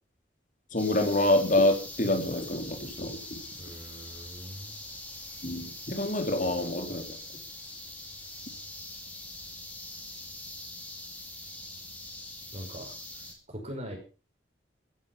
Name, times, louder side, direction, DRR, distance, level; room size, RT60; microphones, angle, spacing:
voice 1, 0.7-3.4 5.4-7.2, left 1 dB, 45° left, 4 dB, 3.8 m, -27 dB
sound 1, 0.8-13.3, left 1 dB, 10° left, 4.8 m, -43 dB
voice 2, 3.6-4.8 12.5-12.9 13.5-14.0, equal, 40° right, 2 dB, 5.4 m, -41 dB
16.0 x 12.0 x 5.7 m, 0.35 s
head